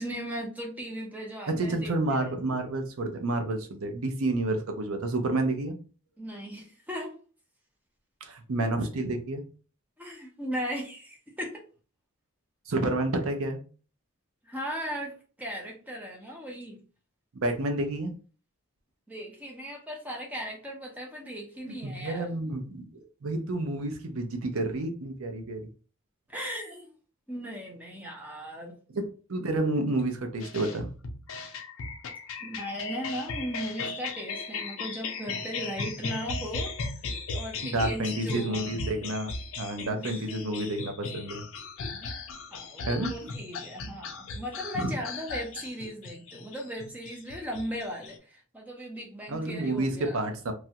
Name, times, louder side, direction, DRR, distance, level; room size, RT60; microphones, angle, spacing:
voice 1, 0.0-2.3 6.2-7.1 10.0-11.6 14.4-16.8 19.1-22.3 26.3-26.9 27.3-28.7 32.4-36.7 37.3-38.7 39.9-40.2 42.0-42.2 42.5-50.2, equal, 5° right, -1 dB, 0.7 m, -37 dB
voice 2, 1.5-5.7 8.2-9.4 12.7-13.6 17.4-18.1 21.6-25.6 28.9-29.0 29.3-30.9 37.6-41.4 41.9-42.0 42.9-43.3 44.7-45.0 49.3-50.5, right 2 dB, 75° right, 5 dB, 0.5 m, -30 dB
sound 1, 30.4-48.2, left 4 dB, 70° left, 0.5 m, -37 dB
3.0 x 2.3 x 2.8 m, 0.37 s
head